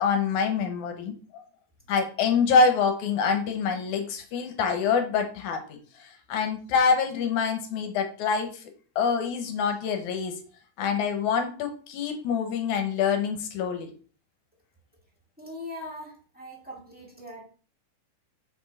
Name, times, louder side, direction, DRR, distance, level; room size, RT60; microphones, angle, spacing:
voice 1, 0.0-1.4 1.9-5.6 6.0-8.7 9.0-10.4 10.8-13.9, left 5 dB, 75° left, 5 dB, 2.3 m, -26 dB
voice 2, 15.4-17.4, left 1 dB, 5° right, -3 dB, 1.1 m, -41 dB
6.1 x 5.2 x 4.0 m, 0.39 s
omnidirectional pair, 3.7 m